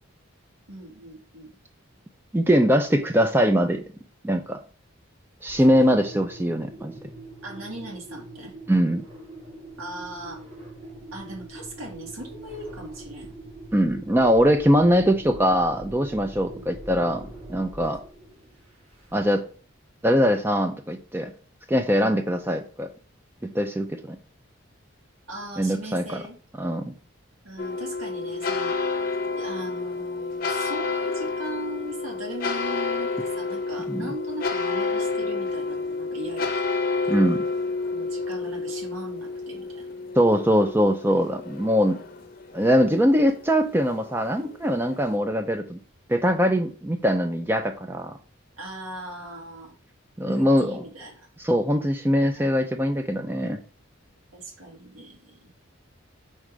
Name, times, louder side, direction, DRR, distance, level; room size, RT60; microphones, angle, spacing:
voice 1, 0.7-1.6 7.4-8.5 9.8-10.4 11.1-13.3 16.5-16.7 25.3-26.4 27.4-28.7 29.3-36.5 37.9-39.9 41.8-42.2 48.6-49.7 50.2-51.3 52.4-52.6 54.3-55.5, right 1 dB, 90° right, -1 dB, 2.0 m, -39 dB
voice 2, 2.3-3.8 4.2-4.6 5.4-6.9 8.7-9.0 13.7-18.0 19.1-19.4 20.0-21.3 21.7-22.9 23.4-24.2 25.6-26.2 26.6-26.9 33.9-34.1 37.1-37.4 40.2-42.0 42.5-45.8 46.1-48.2 50.2-50.8 51.4-53.6, equal, 10° right, 6 dB, 0.4 m, -22 dB
Engine, 5.4-19.4, right 1 dB, 30° right, 2.5 m, -43 dB
sound 1, 27.6-45.2, left 3 dB, 45° left, 0.7 m, -30 dB
4.7 x 4.2 x 5.0 m, 0.40 s
head